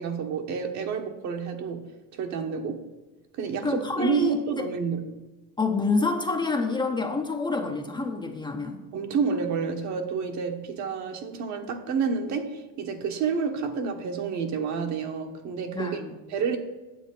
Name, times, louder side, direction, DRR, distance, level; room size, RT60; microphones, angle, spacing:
voice 1, 0.0-2.8 3.3-5.1 8.9-16.0 16.3-16.6, right 5 dB, 50° right, 1.3 m, -29 dB
voice 2, 3.6-4.7 5.6-8.8 15.7-16.2, left 3 dB, 10° left, 0.7 m, -27 dB
9.5 x 7.4 x 5.5 m
cardioid pair, 135°, 37 cm